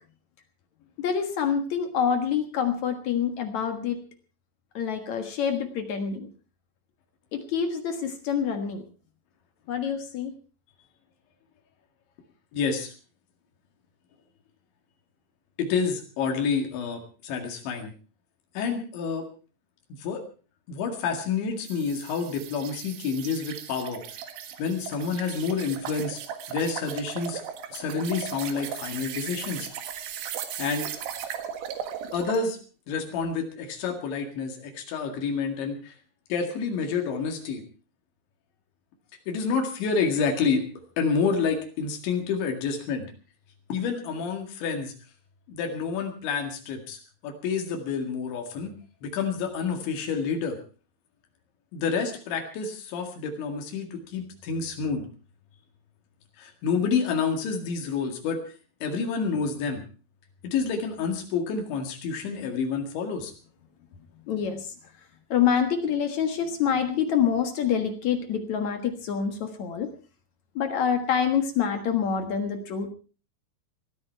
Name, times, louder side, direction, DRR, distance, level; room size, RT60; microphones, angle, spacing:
voice 1, 1.0-4.0 4.7-6.3 7.3-8.8 9.7-10.3 64.3-64.7 65.3-69.9 70.6-72.9, left 7 dB, 55° left, 6 dB, 2.2 m, -26 dB
voice 2, 12.5-12.9 15.6-17.9 18.6-19.3 20.0-20.2 20.7-24.0 24.6-26.2 26.5-27.4 27.7-29.7 30.6-30.9 32.1-32.6 32.9-35.9 36.3-37.6 39.3-40.6 41.0-43.1 43.7-44.9 45.5-48.7 49.0-50.6 51.7-55.0 56.4-58.4 58.8-59.8 60.4-63.3, left 5 dB, 90° left, 3 dB, 4.4 m, -28 dB
sound 1, 21.7-32.5, right 9 dB, 85° right, 4.0 m, -37 dB
19.5 x 13.5 x 4.6 m, 0.38 s
omnidirectional pair, 5.1 m